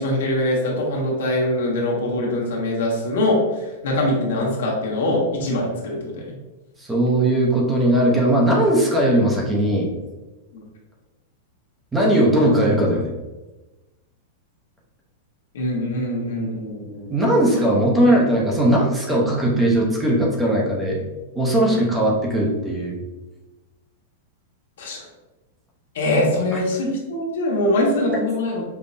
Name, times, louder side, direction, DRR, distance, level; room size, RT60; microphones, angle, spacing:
voice 1, 0.0-6.3 10.5-10.6 15.5-17.6 21.7-21.9 24.8-25.0 25.9-28.6, left 1 dB, 85° left, -3 dB, 1.1 m, -23 dB
voice 2, 6.8-9.9 11.9-13.1 17.1-21.0 21.3-23.0, right 1 dB, 10° right, -3 dB, 0.6 m, -19 dB
5.2 x 2.0 x 2.6 m, 1.1 s
supercardioid pair, 170°, 0 cm